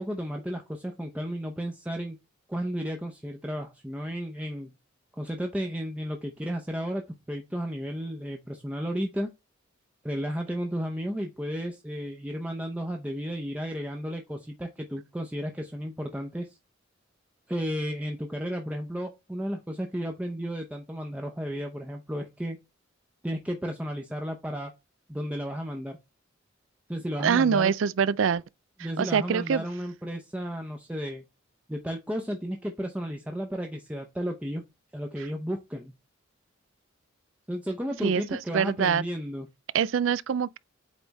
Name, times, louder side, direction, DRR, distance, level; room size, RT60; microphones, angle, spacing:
voice 1, 0.0-2.2 2.5-4.7 5.2-9.3 10.0-16.6 17.5-22.6 23.2-24.7 25.1-26.0 26.9-27.7 28.8-31.2 31.7-34.6 34.9-35.9 37.5-39.5, equal, 5° right, 0.7 m, -33 dB
voice 2, 27.2-28.4 28.8-29.6 38.0-39.0 39.7-40.6, right 7 dB, 75° right, 0.4 m, -25 dB
8.2 x 3.4 x 4.0 m
head